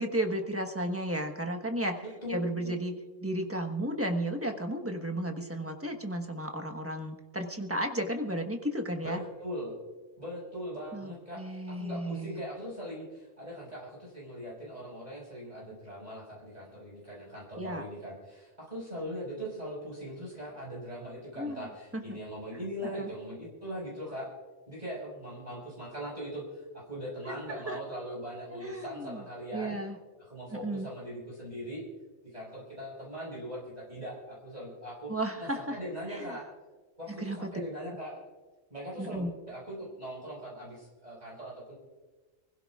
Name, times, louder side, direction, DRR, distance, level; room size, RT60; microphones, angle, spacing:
voice 1, 0.0-2.0 2.3-3.0 3.2-9.2 10.9-12.4 17.6-17.8 21.4-22.2 22.9-23.1 27.2-27.8 28.5-29.2 29.5-30.0 30.5-30.9 35.1-35.8 36.1-36.3 37.1-37.5 39.0-39.3, right 1 dB, 10° right, 3 dB, 1.2 m, -34 dB
voice 2, 2.2-2.8 9.0-9.8 10.2-24.3 24.7-29.8 30.2-31.9 32.3-35.1 35.4-36.5 37.0-38.2 38.7-41.7, equal, 30° right, -6 dB, 5.9 m, -40 dB
27.5 x 16.5 x 2.4 m, 1.3 s
omnidirectional pair, 1.4 m